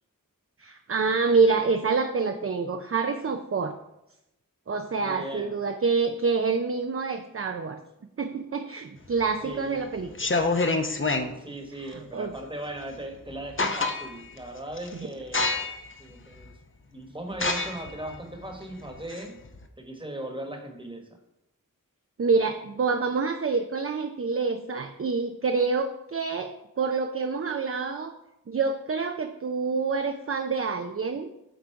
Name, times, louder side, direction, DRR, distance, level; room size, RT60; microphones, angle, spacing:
voice 1, 0.6-3.8 4.7-7.8 8.2-10.1 12.1-12.3 14.9-15.1 22.2-28.1 28.5-31.3, right 4 dB, 40° right, 7 dB, 0.4 m, -27 dB
voice 2, 5.0-5.5 9.4-9.8 11.4-15.7 16.0-16.5 16.9-19.4 19.8-21.1, right 1 dB, 15° right, 3 dB, 1.2 m, -38 dB
sound 1, 9.1-9.6 10.1-11.3 12.9-13.0 13.3-14.3 14.7-14.9 15.3-15.9 16.4-16.5 17.3-19.6, left 3 dB, 35° left, 0.6 m, -27 dB
7.9 x 3.8 x 4.7 m, 0.89 s
wide cardioid pair, 40°, 34 cm